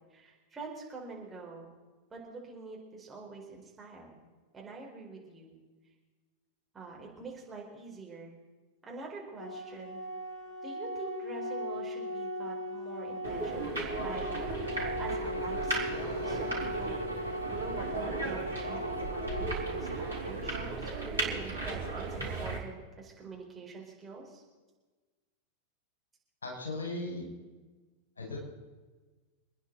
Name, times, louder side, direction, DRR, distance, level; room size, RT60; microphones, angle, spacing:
voice 1, 0.1-1.7 2.1-4.2 4.5-5.6 6.7-8.3 8.8-10.0 10.6-14.2 14.5-14.7 15.0-17.0 17.5-24.4, right 4 dB, 15° right, -3 dB, 4.4 m, -45 dB
Organ, 9.4-20.4, equal, 35° left, 2.4 m, -38 dB
sound 1, 13.2-22.6, right 2 dB, 75° right, 4.4 m, -36 dB
Bowed string instrument, 15.1-20.8, right 2 dB, 85° left, 0.7 m, -41 dB
voice 2, 26.4-27.3 28.2-28.4, left 2 dB, 70° left, -1 dB, 5.6 m, -37 dB
27.0 x 10.0 x 4.0 m, 1.3 s
figure-of-eight pair, 90°, 0 cm